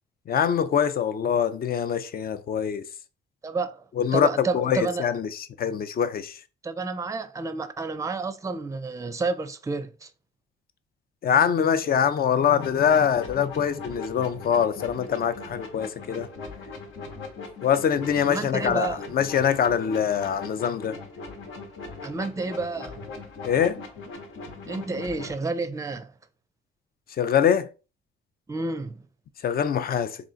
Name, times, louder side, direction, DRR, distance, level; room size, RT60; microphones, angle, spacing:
voice 1, 0.3-2.8 4.0-5.3 5.6-6.4 11.2-16.3 17.6-21.0 23.4-23.8 27.2-27.7 29.4-30.2, left 8 dB, 50° left, 0.5 m, -24 dB
voice 2, 3.4-3.8 4.1-5.0 6.6-10.1 18.2-19.0 22.0-23.1 24.7-26.1 28.5-29.0, right 3 dB, 15° right, 0.5 m, -30 dB
sound 1, 12.6-25.4, left 3 dB, 85° left, 1.2 m, -40 dB
3.7 x 2.4 x 3.9 m
cardioid pair, 90°, 20 cm